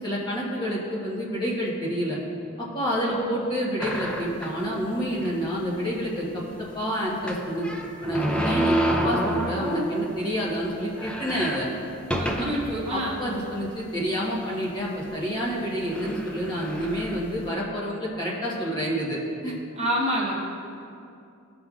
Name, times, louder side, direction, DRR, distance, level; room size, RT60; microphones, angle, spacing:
voice 1, 0.0-2.2 2.6-7.7 8.0-11.7 12.4-12.5 12.9-19.5, equal, 20° left, -5 dB, 1.1 m, -28 dB
sound 1, 3.8-4.7 5.2-5.3 5.6-5.7 7.2-10.1 10.5-10.6 10.9-12.8 13.4-13.5 14.4-14.6 15.5-15.6 15.9-17.5, equal, 5° left, 0.5 m, -28 dB
voice 2, 12.2-13.2 19.8-20.3, equal, 30° right, -3 dB, 1.0 m, -27 dB
14.0 x 5.2 x 2.4 m, 2.5 s
head